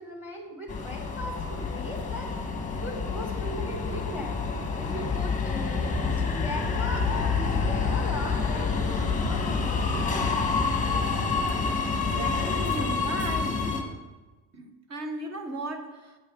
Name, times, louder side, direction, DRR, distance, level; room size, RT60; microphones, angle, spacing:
voice 1, 0.0-2.3 2.5-4.4 4.8-5.8 6.1-10.1, equal, 5° right, 1 dB, 2.0 m, -38 dB
Subway metro underground, 0.7-13.8, left 4 dB, 15° left, 1.3 m, -28 dB
voice 2, 11.9-13.7 14.5-16.2, right 2 dB, 30° right, 6 dB, 1.1 m, -36 dB
11.0 x 8.4 x 3.8 m, 1.2 s
cardioid pair, 160°, 49 cm